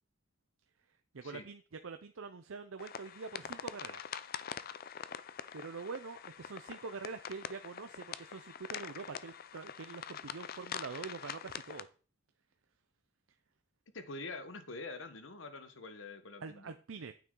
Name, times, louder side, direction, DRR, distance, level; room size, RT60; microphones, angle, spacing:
voice 1, 1.1-4.0 5.5-11.9 16.4-17.1, right 4 dB, 85° right, 0.6 m, -45 dB
sound 1, 2.8-11.8, left 8 dB, 50° left, 0.5 m, -45 dB
voice 2, 13.9-16.7, left 3 dB, 70° left, 1.2 m, -45 dB
9.1 x 8.3 x 3.8 m
head